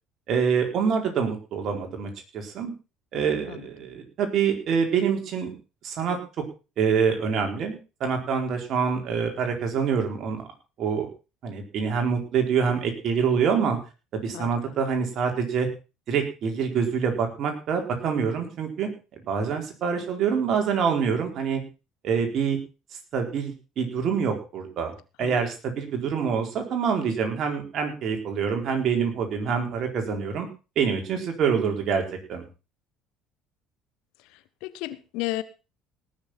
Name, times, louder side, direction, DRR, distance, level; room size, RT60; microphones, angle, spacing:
voice 1, 0.3-2.7 3.1-5.5 5.8-6.2 6.8-10.5 10.8-11.1 11.4-13.8 14.1-15.7 16.1-21.6 22.0-22.6 23.1-30.5 30.8-32.4, right 6 dB, 55° right, 4.3 m, -26 dB
voice 2, 34.6-35.4, left 17 dB, 65° left, 1.1 m, -32 dB
18.5 x 7.0 x 5.9 m
hypercardioid pair, 60°, 0 cm